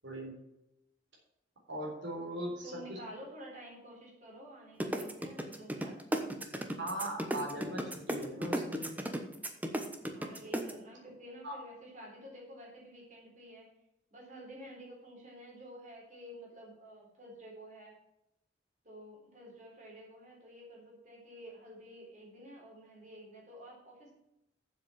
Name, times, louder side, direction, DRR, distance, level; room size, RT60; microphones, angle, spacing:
voice 1, 0.0-0.3 1.7-3.0 6.8-8.9 11.4-11.6, right 1 dB, 80° right, -2 dB, 3.8 m, -39 dB
voice 2, 2.6-6.0 10.1-13.7 14.1-18.0 18.8-24.1, equal, 40° right, -2 dB, 4.2 m, -50 dB
sound 1, 4.8-10.7, right 1 dB, 10° right, 1.0 m, -34 dB
7.6 x 7.4 x 7.5 m, 0.85 s
head